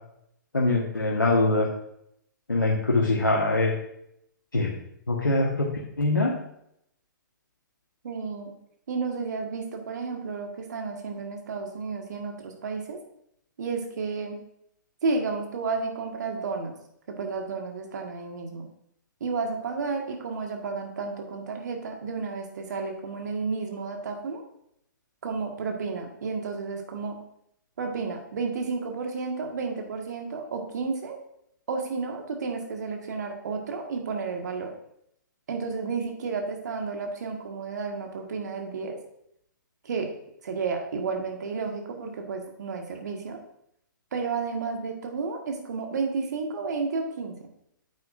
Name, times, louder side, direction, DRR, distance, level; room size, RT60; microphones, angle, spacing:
voice 1, 0.5-1.7 2.5-3.7 4.5-4.7 5.1-5.7 6.0-6.3, left 2 dB, 80° left, -2 dB, 1.4 m, -23 dB
voice 2, 8.0-8.5 8.9-13.0 13.6-14.4 15.0-16.7 17.1-18.7 19.2-24.4 25.2-27.1 27.8-31.2 31.7-34.7 35.5-39.0 39.8-40.1 40.4-43.4 44.1-47.4, right 4 dB, 55° right, 3 dB, 1.6 m, -32 dB
9.2 x 8.3 x 2.6 m, 0.75 s
figure-of-eight pair, 125°, 11 cm